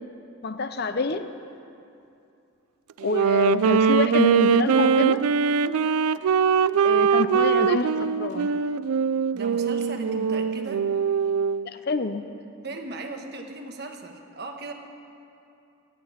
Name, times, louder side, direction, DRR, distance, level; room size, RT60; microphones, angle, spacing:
voice 1, 0.4-1.2 3.0-5.2 6.8-8.5 11.7-12.2, left 3 dB, 45° left, 10 dB, 0.6 m, -26 dB
Wind instrument woodwind instrument, 3.0-11.7, right 6 dB, 80° right, 0.3 m, -22 dB
voice 2, 9.3-10.9 12.6-14.7, right 2 dB, 45° right, 4 dB, 1.2 m, -37 dB
15.0 x 8.4 x 9.9 m, 2.7 s
head